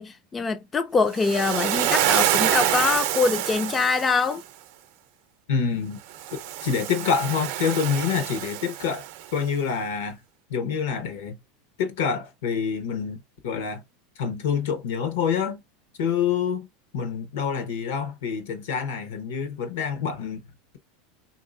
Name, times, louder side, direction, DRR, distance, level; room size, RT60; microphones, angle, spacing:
voice 1, 0.0-4.4, left 4 dB, 20° left, 0.3 m, -24 dB
Waves surf, 1.1-4.4 6.1-9.2, right 12 dB, 65° right, 0.5 m, -26 dB
voice 2, 5.5-6.0 6.3-9.0 9.3-10.2 10.5-11.4 11.8-13.8 14.2-15.6 16.0-16.7 16.9-20.4, left 6 dB, 80° left, 1.0 m, -27 dB
3.1 x 2.7 x 2.5 m
supercardioid pair, 140°, 0 cm